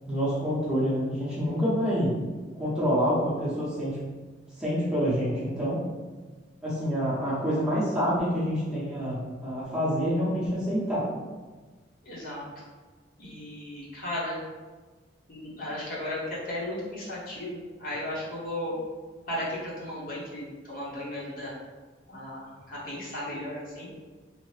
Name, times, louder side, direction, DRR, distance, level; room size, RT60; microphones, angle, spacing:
voice 1, 0.1-2.1 2.6-4.0 4.6-5.8 6.6-11.0, equal, 5° right, -10 dB, 0.7 m, -27 dB
voice 2, 12.0-12.6 13.2-14.4 15.3-18.7 19.3-21.5 22.1-23.9, left 1 dB, 50° left, -7 dB, 0.9 m, -35 dB
2.8 x 2.0 x 3.2 m, 1.3 s
head